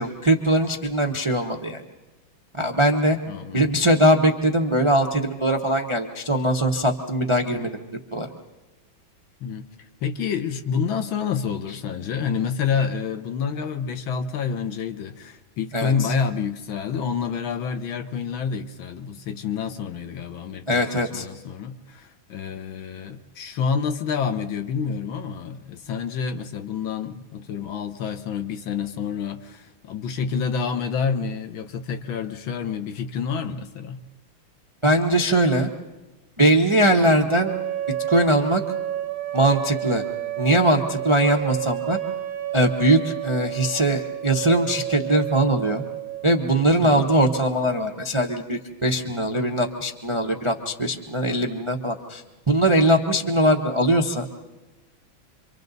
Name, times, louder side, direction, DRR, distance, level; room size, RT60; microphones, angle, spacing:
voice 1, 0.0-1.8 2.6-3.2 3.5-7.8 8.1-8.3 15.7-15.9 20.7-21.3 34.8-35.7 36.4-37.5 38.1-38.6 39.3-40.0 40.4-42.0 42.5-45.8 46.2-54.3, right 1 dB, 30° right, 0.5 m, -21 dB
voice 2, 3.3-3.7 9.4-9.6 10.0-20.8 21.1-34.0 46.8-47.1, left 6 dB, 75° left, 1.8 m, -28 dB
sound 1, 37.4-46.4, right 12 dB, 55° right, 1.1 m, -30 dB
28.0 x 24.5 x 4.0 m
omnidirectional pair, 2.2 m